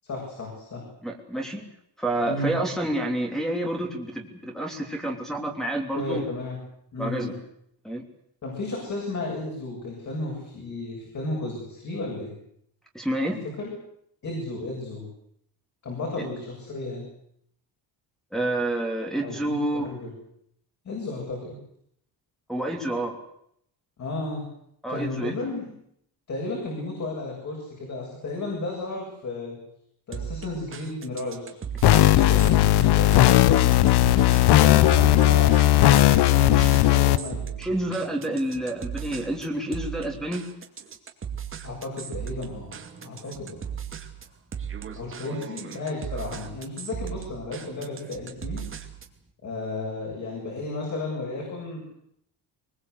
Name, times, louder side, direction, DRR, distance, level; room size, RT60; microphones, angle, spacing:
voice 1, 0.0-0.8 2.3-2.5 5.9-6.6 6.9-7.3 8.4-12.3 13.6-13.7 14.2-15.0 15.8-17.0 19.2-20.1 20.8-21.6 24.0-24.4 24.9-25.6 26.3-29.6 30.1-31.6 32.0-33.8 34.5-37.5 41.6-43.6 45.0-48.6 49.4-51.9, left 2 dB, 45° left, -1 dB, 7.7 m, -33 dB
voice 2, 1.0-1.7 2.0-6.2 7.0-7.3 7.8-8.0 12.9-13.4 16.2-16.3 18.3-19.9 22.5-23.2 24.8-25.3 36.5-36.7 37.6-40.5, right 1 dB, ahead, -1 dB, 3.0 m, -29 dB
sound 1, 30.1-49.2, right 8 dB, 30° right, 2.5 m, -37 dB
sound 2, 31.8-37.2, left 14 dB, 75° left, 1.0 m, -17 dB
22.5 x 21.5 x 8.1 m, 0.72 s
cardioid pair, 165°, 41 cm